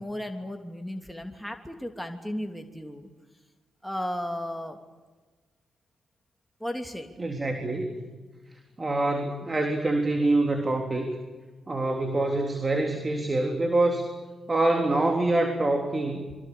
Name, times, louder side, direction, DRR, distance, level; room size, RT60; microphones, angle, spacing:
voice 1, 0.0-3.1 3.8-4.8 6.6-7.1 14.8-14.9, left 1 dB, 5° left, 4 dB, 2.9 m, -35 dB
voice 2, 7.2-8.0 8.8-11.1 11.7-14.1 14.5-16.4, right 2 dB, 35° right, 4 dB, 3.7 m, -25 dB
27.0 x 24.0 x 7.0 m, 1.3 s
hypercardioid pair, 45°, 0 cm